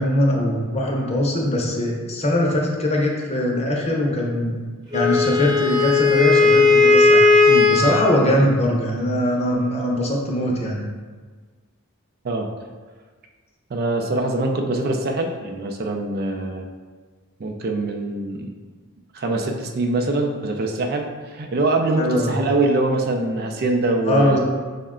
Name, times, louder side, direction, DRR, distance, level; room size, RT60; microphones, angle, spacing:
voice 1, 0.0-4.6 4.9-7.3 7.7-10.8 22.0-22.4 24.0-24.4, left 1 dB, 30° left, -1 dB, 0.6 m, -21 dB
Wind instrument woodwind instrument, 4.9-8.2, left 3 dB, 20° right, 0.9 m, -16 dB
voice 2, 13.7-16.6 17.4-18.5 19.1-24.4, right 2 dB, 45° right, 3 dB, 0.4 m, -23 dB
5.4 x 2.1 x 3.6 m, 1.4 s
head